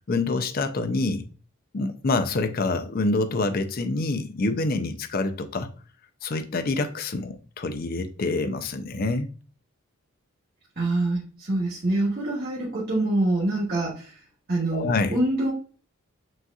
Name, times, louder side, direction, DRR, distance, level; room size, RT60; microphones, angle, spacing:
voice 1, 0.1-1.3 1.7-5.7 6.2-9.3 14.7-15.1, left 3 dB, 45° left, 0.5 m, -26 dB
voice 2, 10.8-14.2 14.5-15.5, right 2 dB, 45° right, 1.3 m, -25 dB
6.1 x 2.8 x 2.3 m
head